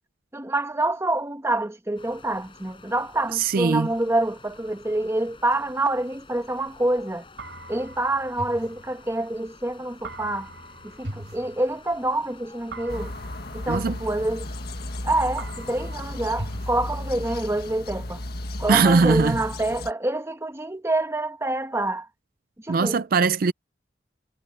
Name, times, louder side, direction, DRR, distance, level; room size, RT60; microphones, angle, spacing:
voice 1, 0.3-7.2 7.7-10.5 10.8-13.1 13.5-14.5 15.0-18.2 18.6-22.1 22.6-23.0, right 2 dB, 15° right, 1.1 m, -27 dB
sound 1, 2.0-17.8, left 3 dB, 30° left, 5.3 m, -50 dB
voice 2, 3.3-3.9 13.7-14.0 18.7-19.4 22.7-23.5, right 4 dB, 55° right, 0.4 m, -20 dB
sound 2, 7.4-9.5 10.0-12.1 12.7-15.0 15.4-17.5, right 1 dB, 80° right, 3.8 m, -41 dB
sound 3, 12.9-19.9, left 1 dB, 60° left, 1.6 m, -34 dB
head